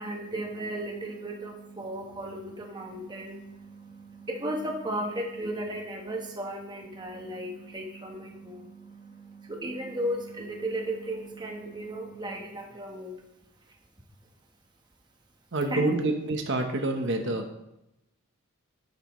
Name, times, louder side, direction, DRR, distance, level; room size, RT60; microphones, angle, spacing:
voice 1, 0.0-13.1 15.7-15.8, right 1 dB, 20° right, 1 dB, 1.1 m, -35 dB
voice 2, 15.5-17.5, right 2 dB, 55° right, 4 dB, 1.0 m, -27 dB
11.0 x 9.7 x 3.1 m, 0.87 s
head